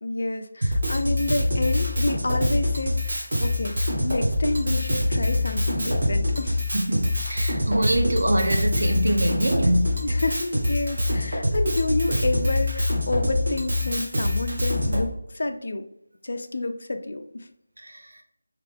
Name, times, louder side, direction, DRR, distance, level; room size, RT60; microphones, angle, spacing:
voice 1, 0.0-6.8 10.0-15.9 16.2-17.5, left 2 dB, 50° left, 7 dB, 0.4 m, -29 dB
Drum kit, 0.6-15.0, left 1 dB, 40° right, 1.2 m, -25 dB
voice 2, 6.7-10.0 17.8-18.1, right 1 dB, 70° right, 4 dB, 0.8 m, -24 dB
3.5 x 3.2 x 3.5 m, 0.75 s
figure-of-eight pair, 175°, 0 cm